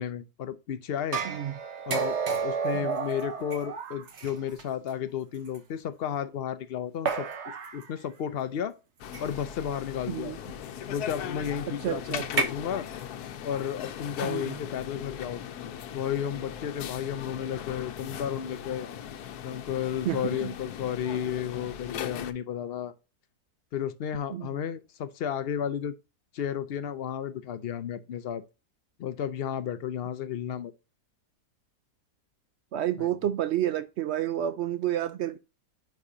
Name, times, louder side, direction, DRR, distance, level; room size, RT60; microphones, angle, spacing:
voice 1, 0.0-1.2 1.9-2.1 2.4-7.3 7.7-8.7 9.2-10.3 10.9-12.9 13.4-15.4 15.9-18.9 19.4-22.9 23.7-25.9 26.3-28.4 29.0-30.7 33.0-33.1, left 9 dB, 90° left, 0.5 m, -33 dB
sound 1, 1.1-4.6 5.5-5.6 7.1-7.8 9.1-9.5 12.2-12.4, right 5 dB, 50° right, 1.2 m, -31 dB
sound 2, 9.0-22.3, left 9 dB, 75° left, 1.2 m, -39 dB
voice 2, 11.8-12.3 14.2-14.5 20.0-20.5 24.3-24.5 32.7-35.4, right 11 dB, 85° right, 0.5 m, -30 dB
9.7 x 4.6 x 2.6 m
omnidirectional pair, 1.7 m